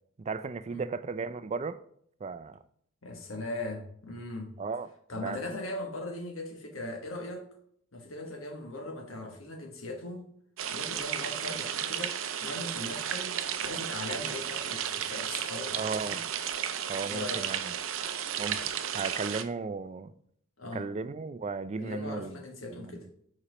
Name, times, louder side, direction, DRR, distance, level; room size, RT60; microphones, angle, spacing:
voice 1, 0.2-1.8 2.2-2.6 4.6-4.9 5.2-5.4 15.7-16.2 16.9-17.7 18.4-20.1 20.7-22.4 22.7-23.0, right 4 dB, 35° right, 0.4 m, -35 dB
voice 2, 3.0-4.6 5.1-7.5 7.9-10.3 10.7-16.2 17.1-17.5 20.6-20.9 21.8-23.1, left 2 dB, 90° left, 1.3 m, -39 dB
sound 1, 10.6-19.4, right 9 dB, 80° right, 0.5 m, -33 dB
5.0 x 4.2 x 5.0 m
head